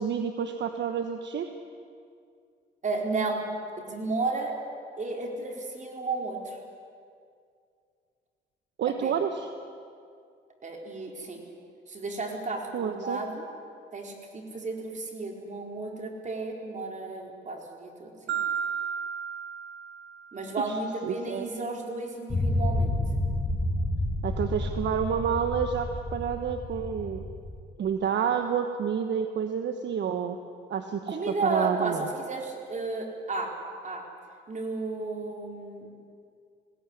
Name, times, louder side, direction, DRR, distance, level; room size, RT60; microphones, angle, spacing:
voice 1, 0.0-1.5 8.8-9.5 12.7-13.2 21.0-21.5 24.2-27.2 27.8-30.4 30.7-32.1, right 7 dB, 65° right, 7 dB, 1.3 m, -29 dB
voice 2, 2.8-3.4 3.8-4.6 5.0-6.6 9.0-9.1 10.6-11.4 11.9-13.5 13.9-18.4 20.3-23.0 31.1-33.5 33.8-34.0 34.5-35.9, right 3 dB, 40° right, 1 dB, 4.5 m, -33 dB
Marimba xylophone, 18.3-20.5, right 7 dB, 85° right, 2.5 m, -33 dB
sound 1, 22.3-27.6, left 1 dB, 30° left, 5.1 m, -30 dB
20.0 x 17.0 x 9.9 m, 2.3 s
cardioid pair, 90°, 20 cm